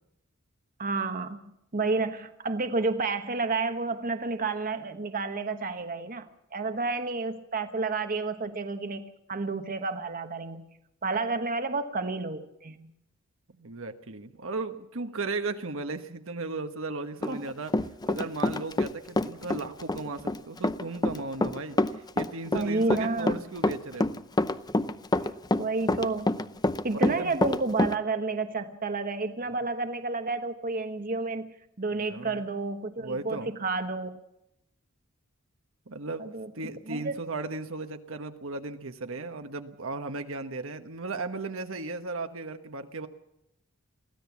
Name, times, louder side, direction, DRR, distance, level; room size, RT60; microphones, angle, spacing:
voice 1, 0.8-1.4 1.7-10.6 11.0-12.9 17.3-17.4 22.5-23.4 25.6-26.4 26.8-34.2 36.2-36.5 36.9-37.2, right 3 dB, 40° right, 8 dB, 1.1 m, -30 dB
voice 2, 13.6-17.7 18.1-21.8 22.1-24.1 26.9-27.3 31.9-32.4 33.0-33.6 35.9-36.3 36.5-43.1, right 3 dB, 65° right, 7 dB, 1.2 m, -36 dB
Run, 17.2-18.9 19.2-28.0, left 2 dB, 20° left, 0.6 m, -26 dB
23.0 x 16.0 x 7.2 m, 0.84 s
head